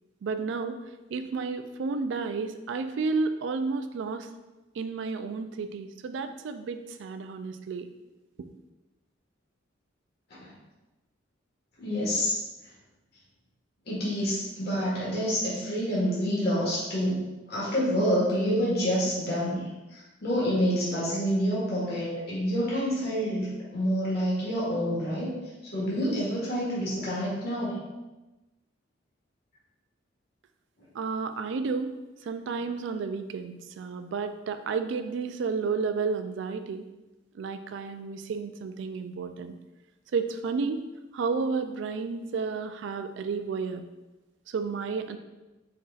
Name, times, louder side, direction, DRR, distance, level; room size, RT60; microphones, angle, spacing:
voice 1, 0.2-0.8 1.1-4.3 4.8-7.9 30.9-32.0 32.3-36.9 37.3-39.6 40.1-40.8 41.1-43.9 44.5-45.2, right 4 dB, 65° right, 9 dB, 0.3 m, -31 dB
voice 2, 11.8-12.3 13.9-17.2 17.5-19.6 19.9-23.5 23.7-25.3 25.7-27.7, equal, 55° left, -7 dB, 1.4 m, -27 dB
4.3 x 4.0 x 2.4 m, 1.1 s
head